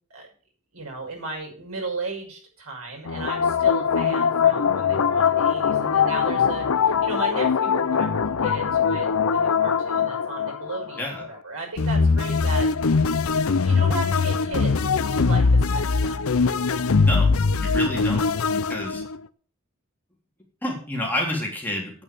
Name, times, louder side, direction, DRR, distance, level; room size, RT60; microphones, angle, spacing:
voice 1, 0.7-12.7 13.0-13.1 13.6-16.2, right 3 dB, 90° right, 0 dB, 6.2 m, -35 dB
sound 1, 3.1-11.3 11.8-19.2, left 5 dB, 70° left, 0.6 m, -22 dB
voice 2, 17.0-17.4 17.6-18.3 18.7-19.0 20.6-21.9, left 1 dB, 10° left, -1 dB, 3.6 m, -28 dB
9.3 x 8.7 x 7.0 m, 0.44 s
head